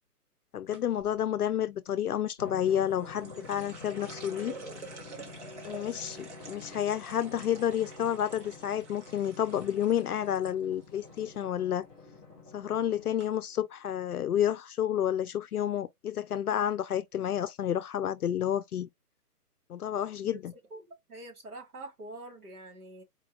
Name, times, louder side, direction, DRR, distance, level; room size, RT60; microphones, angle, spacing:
voice 1, 0.5-4.6 5.6-11.9 12.5-18.9 19.7-20.5, left 10 dB, 70° left, 0.5 m, -30 dB
sound 1, 0.7-1.1 2.6-10.5 10.8-11.4 11.7-12.1 12.8-12.9 13.2-13.3, right 3 dB, 45° right, 1.3 m, -48 dB
Drum, 2.4-13.4, left 3 dB, ahead, 1.0 m, -48 dB
voice 2, 20.7-23.0, right 2 dB, 65° right, 1.9 m, -45 dB
4.3 x 2.5 x 2.7 m
hypercardioid pair, 170°, 47 cm